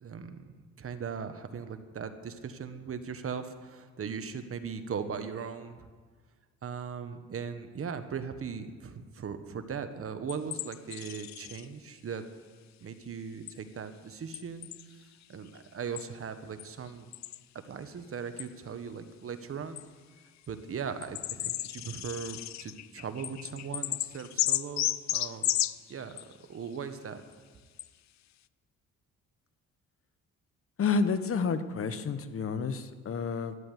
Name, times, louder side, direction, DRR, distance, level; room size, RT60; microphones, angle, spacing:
voice 1, 0.0-0.5 0.8-5.9 6.6-12.2 12.8-14.7 15.3-17.1 17.6-19.9 20.5-25.5 25.9-27.2, right 6 dB, 45° right, 9 dB, 1.4 m, -39 dB
sound 1, 10.3-11.6 13.5-13.6 14.3-14.8 16.0-16.1 16.6-16.7 17.1-17.4 18.4-18.5 19.8-19.9 20.4-20.5 21.0-26.3 27.3-27.4 27.8-27.9, left 14 dB, 65° left, 0.5 m, -33 dB
voice 2, 30.8-33.6, left 5 dB, 45° left, 12 dB, 1.2 m, -30 dB
13.0 x 10.5 x 9.6 m, 1.5 s
cardioid pair, 90°, 30 cm